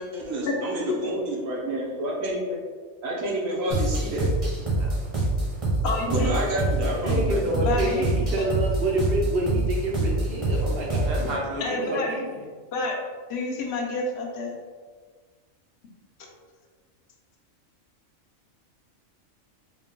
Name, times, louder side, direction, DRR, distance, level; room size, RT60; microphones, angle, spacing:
voice 1, 0.0-2.6 3.0-4.3 6.1-7.6, right 1 dB, 85° right, -4 dB, 1.3 m, -29 dB
sound 1, 3.7-11.4, right 2 dB, 30° right, 0.8 m, -26 dB
voice 2, 5.8-6.3 7.5-8.0 11.2-11.3 11.6-12.1 12.7-13.0 13.3-14.5, left 3 dB, 60° left, 0 dB, 0.9 m, -29 dB
voice 3, 6.7-12.4, right 1 dB, 60° right, -2 dB, 0.7 m, -28 dB
3.8 x 2.3 x 3.7 m, 1.5 s
omnidirectional pair, 1.4 m